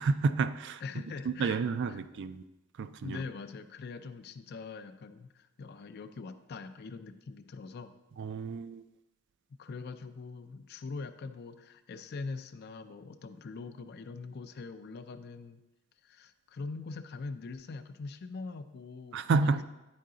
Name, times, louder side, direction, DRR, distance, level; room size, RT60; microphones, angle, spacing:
voice 1, 0.0-0.8 1.3-2.4 2.8-3.2 8.2-8.8 19.1-19.6, right 4 dB, 55° right, 12 dB, 0.3 m, -30 dB
voice 2, 0.8-1.6 1.9-2.0 3.0-7.9 9.6-15.6 16.0-19.6, left 4 dB, 50° left, 10 dB, 0.4 m, -43 dB
9.3 x 4.7 x 3.8 m, 0.98 s
head